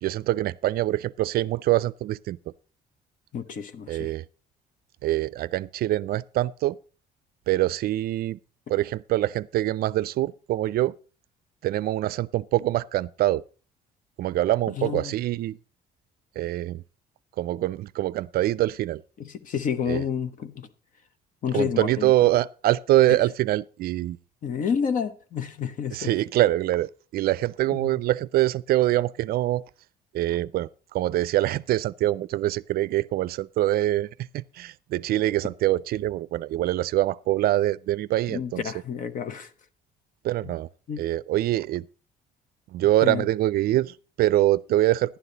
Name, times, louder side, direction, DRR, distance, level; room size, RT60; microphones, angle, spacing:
voice 1, 0.0-2.5 3.9-4.2 5.0-6.8 7.5-8.4 8.7-10.9 11.6-13.4 14.2-15.6 16.4-16.8 17.4-19.0 19.9-20.0 21.5-24.2 25.9-29.6 30.1-38.6 40.2-40.7 41.0-41.9 42.7-45.2, right 15 dB, 65° right, 0.4 m, -24 dB
voice 2, 3.3-4.1 14.8-15.1 19.2-20.7 21.4-22.1 24.4-26.1 27.7-27.9 38.3-39.5 40.4-40.5 40.9-41.0 43.0-43.2, left 7 dB, 50° left, 1.1 m, -29 dB
11.5 x 10.0 x 4.0 m
cardioid pair, 110°, 17 cm